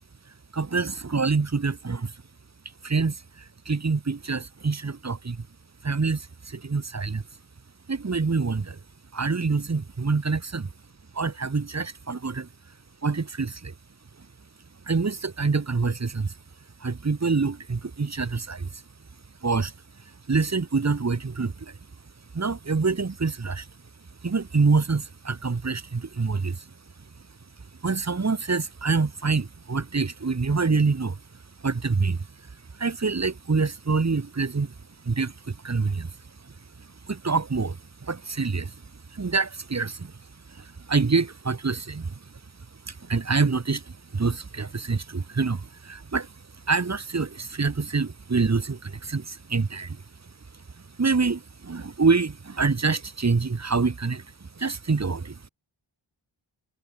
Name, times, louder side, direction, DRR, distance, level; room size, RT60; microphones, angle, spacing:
voice 1, 0.5-2.1 2.8-5.5 5.8-7.2 7.9-8.8 9.1-10.7 11.1-12.5 13.0-13.7 14.9-16.3 16.8-18.8 19.4-19.7 20.3-21.8 22.3-23.7 24.2-26.7 27.8-31.2 31.6-32.3 32.7-34.7 35.0-36.2 36.4-38.7 39.1-40.2 40.5-42.2 42.9-46.3 46.7-50.0 51.0-55.5, right 4 dB, 35° right, 1.1 m, -26 dB
wide cardioid pair, 70°, 49 cm